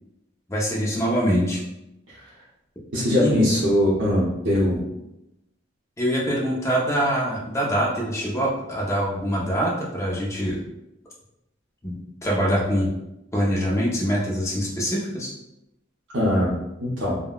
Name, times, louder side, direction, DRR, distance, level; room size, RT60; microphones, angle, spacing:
voice 1, 0.5-1.6 3.2-3.5 6.0-10.6 11.8-12.9 13.3-15.3, equal, 15° left, -3 dB, 0.6 m, -24 dB
voice 2, 2.9-4.8 16.1-17.2, left 1 dB, 70° right, -8 dB, 0.7 m, -21 dB
3.6 x 2.2 x 2.3 m, 0.88 s
head